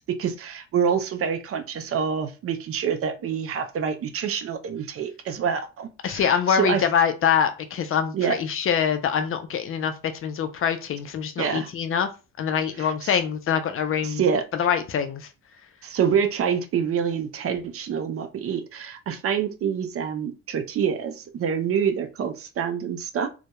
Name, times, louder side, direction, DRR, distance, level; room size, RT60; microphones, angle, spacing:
voice 1, 0.1-6.8 8.1-8.4 11.4-11.7 12.8-12.9 14.0-14.4 15.8-23.3, right 7 dB, 50° right, 0.4 m, -26 dB
voice 2, 6.0-12.1 12.4-14.2 14.5-15.3, left 8 dB, 45° left, 0.4 m, -24 dB
2.2 x 2.1 x 2.8 m
cardioid pair, 90°, 30 cm